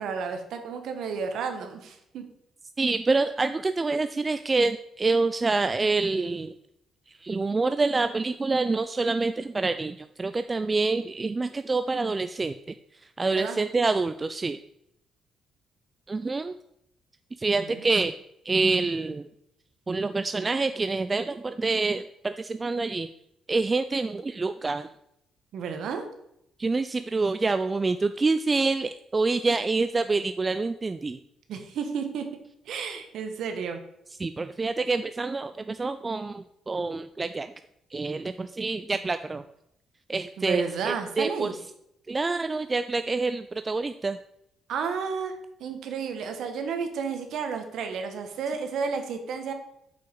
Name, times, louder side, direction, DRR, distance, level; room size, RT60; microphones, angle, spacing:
voice 1, 0.0-2.2 13.2-13.6 17.7-17.8 25.5-26.0 31.5-32.3 32.7-33.8 40.4-41.5 44.7-45.3 45.6-49.5, right 6 dB, 75° right, 6 dB, 1.2 m, -32 dB
voice 2, 2.8-6.5 7.1-14.6 16.1-16.6 17.4-18.1 18.4-19.3 19.9-23.1 23.5-24.9 26.6-31.2 34.2-37.5 37.9-39.4 40.1-41.6 42.1-44.2, right 3 dB, 30° right, 10 dB, 0.3 m, -27 dB
6.3 x 5.6 x 4.7 m, 0.78 s
cardioid pair, 75°, 0 cm